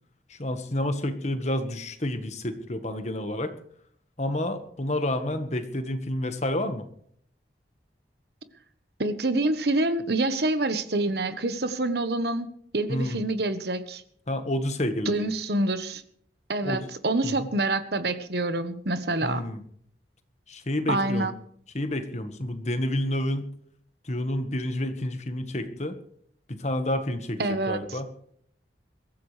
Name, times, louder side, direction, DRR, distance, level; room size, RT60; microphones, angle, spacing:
voice 1, 0.3-3.5 4.2-6.8 12.9-13.2 14.3-15.3 16.6-16.8 17.2-17.5 19.2-19.6 20.5-21.3 21.7-23.5 24.0-25.9 26.5-28.1, left 1 dB, 40° left, 8 dB, 1.5 m, -29 dB
voice 2, 9.0-12.5 12.7-14.0 15.0-16.0 16.5-19.4 20.9-21.4 27.4-28.0, right 2 dB, 60° right, 11 dB, 1.2 m, -26 dB
22.5 x 14.5 x 3.4 m, 0.62 s
head